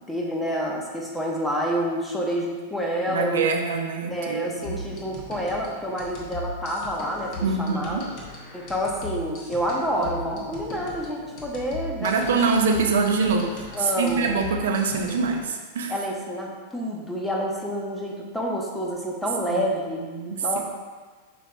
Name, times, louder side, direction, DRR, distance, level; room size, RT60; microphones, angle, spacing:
voice 1, 0.1-3.5 4.1-8.0 8.5-12.4 12.7-12.8 13.7-14.4 15.9-20.1 20.4-20.6, equal, 5° left, -2 dB, 0.8 m, -28 dB
voice 2, 3.1-4.8 7.4-8.0 12.0-15.9 19.5-19.6 20.1-20.6, right 4 dB, 80° right, 3 dB, 0.5 m, -24 dB
sound 1, 4.6-15.4, left 1 dB, 50° left, 1.1 m, -38 dB
5.0 x 3.0 x 3.4 m, 1.4 s
hypercardioid pair, 120°, 0 cm